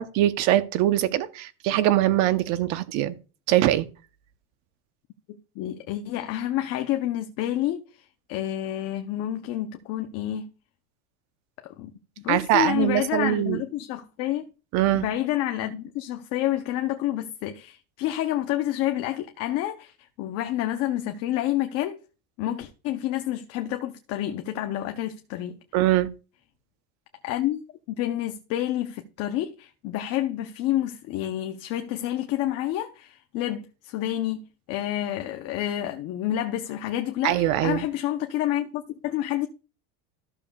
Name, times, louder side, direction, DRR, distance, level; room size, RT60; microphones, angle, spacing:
voice 1, 0.0-3.2 3.5-3.9 12.3-13.6 14.7-15.0 25.7-26.1 37.2-37.8, right 13 dB, 55° right, 0.8 m, -22 dB
voice 2, 5.6-7.8 8.3-10.4 11.6-11.9 12.2-14.4 14.9-22.0 22.4-25.6 27.2-34.4 34.7-39.5, left 13 dB, 50° left, 0.7 m, -29 dB
14.0 x 6.7 x 2.3 m
cardioid pair, 160°, 33 cm